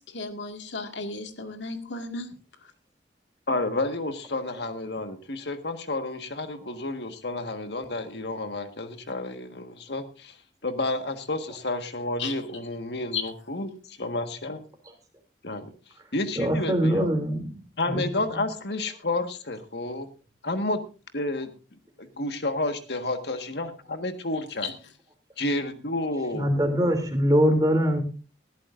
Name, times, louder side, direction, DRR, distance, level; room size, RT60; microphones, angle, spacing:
voice 1, 0.1-2.3 12.2-12.3 13.1-13.2 24.6-24.7, left 4 dB, 90° left, 6 dB, 2.0 m, -33 dB
voice 2, 3.5-10.4 10.6-14.6 15.4-15.7 16.1-17.1 17.8-20.1 20.4-20.8 21.1-21.5 22.0-24.7 25.4-26.5, left 2 dB, 70° left, 8 dB, 1.6 m, -30 dB
voice 3, 4.3-4.6 16.3-17.6 17.9-18.4 18.9-19.0 26.3-28.0, equal, 20° right, 4 dB, 2.9 m, -24 dB
19.5 x 13.5 x 2.6 m, 0.33 s
head